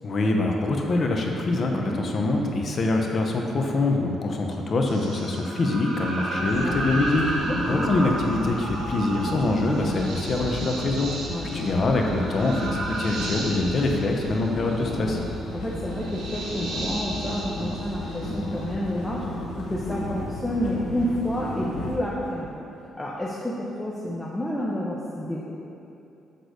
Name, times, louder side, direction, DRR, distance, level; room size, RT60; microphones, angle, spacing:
voice 1, 0.0-7.3 7.7-11.1 11.5-15.2, left 2 dB, 45° left, 1 dB, 0.9 m, -24 dB
voice 2, 1.7-2.0 6.3-6.8 7.5-7.9 11.3-11.5 15.5-19.3 19.6-22.6 23.0-25.5, equal, 10° left, -5 dB, 0.8 m, -30 dB
sound 1, 4.9-18.7, right 1 dB, 85° right, 1.5 m, -34 dB
sound 2, 6.4-22.0, left 1 dB, 80° left, 1.0 m, -33 dB
6.8 x 3.9 x 6.4 m, 2.7 s
cardioid pair, 90°, 0 cm